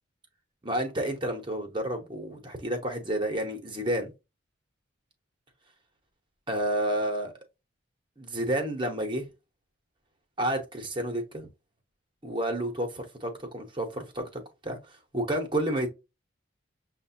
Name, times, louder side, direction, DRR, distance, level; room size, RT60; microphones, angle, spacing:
voice 1, 0.6-4.1 6.5-7.3 8.2-9.3 10.4-11.5 12.2-15.9, right 1 dB, 25° right, 0.8 m, -30 dB
6.4 x 2.2 x 2.6 m
head